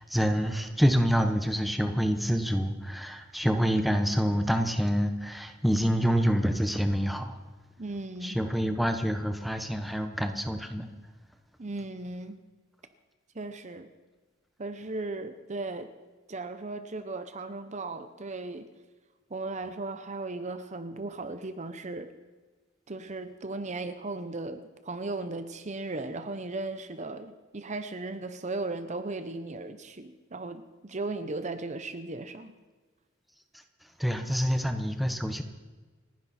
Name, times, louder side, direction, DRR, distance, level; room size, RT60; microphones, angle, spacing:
voice 1, 0.1-7.4 8.2-10.9 34.0-35.4, equal, ahead, 6 dB, 1.1 m, -27 dB
voice 2, 7.8-8.4 11.6-12.4 13.3-13.9 14.6-15.9 16.3-18.7 19.3-22.1 22.9-32.5, right 2 dB, 35° right, 9 dB, 0.8 m, -36 dB
29.0 x 10.5 x 4.3 m, 1.3 s
head